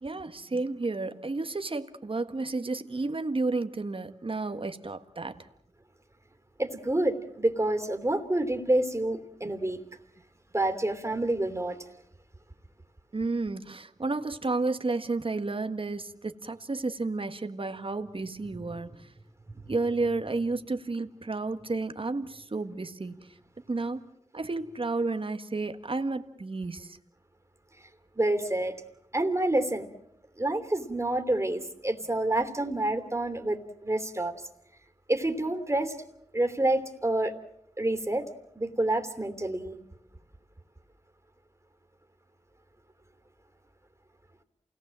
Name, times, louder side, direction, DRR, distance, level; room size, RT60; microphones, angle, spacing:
voice 1, 0.0-5.5 9.4-9.5 13.1-19.1 19.7-23.2 23.7-24.0 24.3-27.0, right 3 dB, 45° right, 8 dB, 1.6 m, -32 dB
voice 2, 6.6-9.8 10.5-11.8 28.1-28.8 29.1-29.9 30.4-34.3 35.1-35.9 36.3-37.3 37.8-39.8, right 1 dB, 20° right, 7 dB, 3.0 m, -28 dB
28.0 x 18.5 x 7.6 m, 0.79 s
cardioid pair, 50°, 13 cm